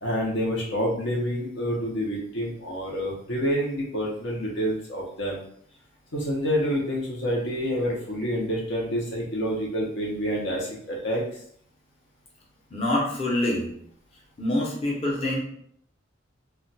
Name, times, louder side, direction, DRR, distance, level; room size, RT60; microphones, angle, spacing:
voice 1, 0.0-5.4 6.1-11.4, equal, 60° left, -2 dB, 0.7 m, -28 dB
voice 2, 12.7-13.7 14.4-15.4, left 1 dB, 30° left, -4 dB, 0.7 m, -25 dB
2.4 x 2.2 x 3.9 m, 0.64 s
head